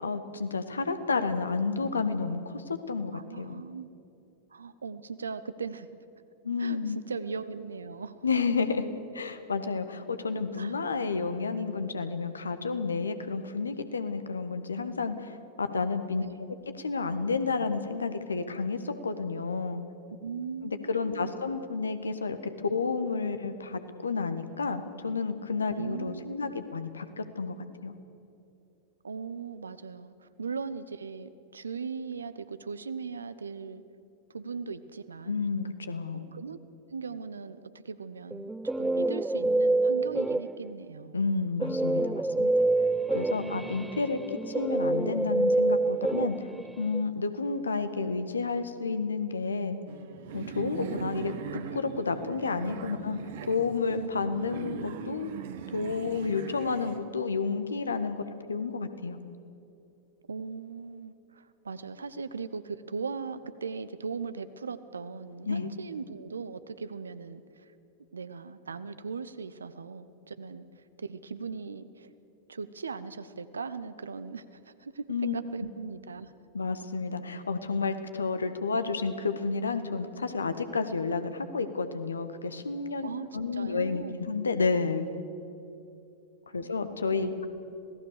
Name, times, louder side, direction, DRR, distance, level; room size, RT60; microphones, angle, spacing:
voice 1, 0.0-3.6 6.4-7.0 8.2-8.9 9.1-16.2 16.8-19.8 20.6-22.4 22.6-27.6 27.8-27.9 35.3-36.2 41.1-42.5 43.1-44.2 44.5-46.5 46.8-49.8 50.3-53.2 53.5-55.3 55.7-58.2 58.5-59.2 65.5-65.7 75.1-75.3 76.5-85.1 86.5-87.3, left 4 dB, 75° left, 10 dB, 1.4 m, -31 dB
voice 2, 3.1-3.9 4.5-5.9 6.6-8.2 10.6-10.7 16.2-16.5 20.2-21.4 25.8-26.5 29.0-33.8 34.3-35.5 36.1-36.6 36.9-37.6 37.8-38.5 38.8-41.2 43.4-43.9 54.0-54.9 60.3-67.7 68.1-72.1 72.5-76.3 83.0-84.2 86.5-86.8 87.1-87.5, right 5 dB, 75° right, 13 dB, 1.0 m, -39 dB
Guitar, 38.3-40.8 41.6-47.0, right 2 dB, 5° right, 0.4 m, -27 dB
sound 1, 49.9-57.0, right 8 dB, 55° right, 1.3 m, -40 dB
26.5 x 18.0 x 6.7 m, 2.6 s
figure-of-eight pair, 90°, 0 cm